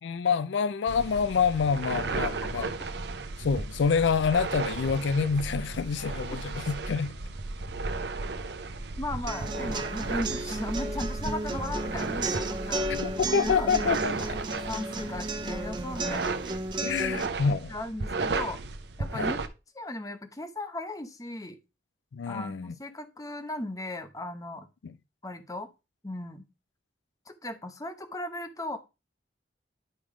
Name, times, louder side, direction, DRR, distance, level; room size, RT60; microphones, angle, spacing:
voice 1, 0.0-2.7 3.4-7.1 12.9-14.4 16.8-17.7 19.1-19.3 22.1-22.7 24.8-24.9, left 6 dB, 85° left, 0.4 m, -27 dB
sound 1, 0.9-19.5, right 3 dB, 65° right, 0.7 m, -34 dB
voice 2, 2.1-2.6 9.0-16.3 17.7-18.6 19.0-19.4 19.7-21.6 22.3-24.7 25.2-25.7 26.0-26.4 27.3-28.8, left 1 dB, 20° left, 0.9 m, -37 dB
sound 2, 9.3-17.3, right 2 dB, 25° right, 0.7 m, -34 dB
10.5 x 3.6 x 4.9 m
head